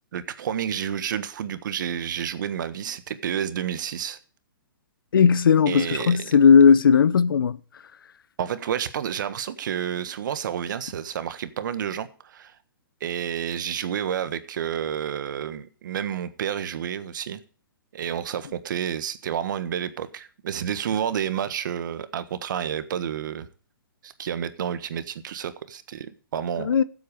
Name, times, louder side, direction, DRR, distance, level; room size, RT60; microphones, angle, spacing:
voice 1, 0.1-4.2 5.7-6.3 8.4-12.5 13.0-17.4 17.9-23.5 24.0-26.7, right 9 dB, 65° right, 1.4 m, -30 dB
voice 2, 5.1-7.6 26.6-26.8, left 6 dB, 80° left, 0.8 m, -17 dB
14.5 x 8.1 x 4.9 m
hypercardioid pair, 135°, 11 cm